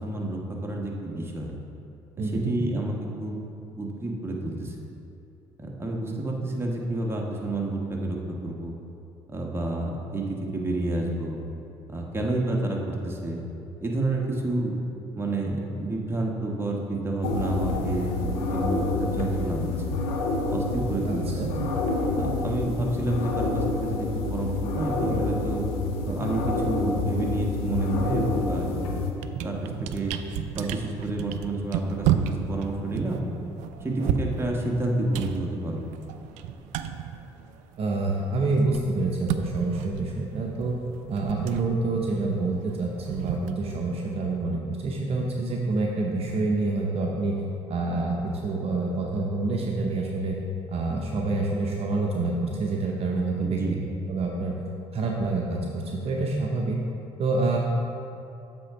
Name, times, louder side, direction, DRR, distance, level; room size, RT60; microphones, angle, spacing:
voice 1, 0.0-1.5 2.2-3.4 3.8-4.7 5.6-8.2 8.4-8.8 9.3-11.4 11.9-13.5 13.8-14.7 15.1-20.0 20.5-21.4 22.2-25.6 26.1-28.7 29.4-30.1 30.5-33.2 33.8-35.9 53.4-53.8, right 2 dB, 20° right, -1 dB, 1.3 m, -29 dB
voice 2, 2.2-2.6 21.0-21.5 37.8-40.8 41.1-47.4 47.7-50.4 50.7-53.6 54.1-54.6 54.9-56.8 57.2-57.6, right 3 dB, 50° right, -1 dB, 0.8 m, -27 dB
sound 1, 17.2-29.1, left 3 dB, 90° left, 0.7 m, -28 dB
sound 2, 28.6-28.8 29.1-38.0 38.2-44.2, right 9 dB, 75° right, 0.4 m, -33 dB
7.6 x 3.7 x 5.7 m, 2.7 s
hypercardioid pair, 65°, 13 cm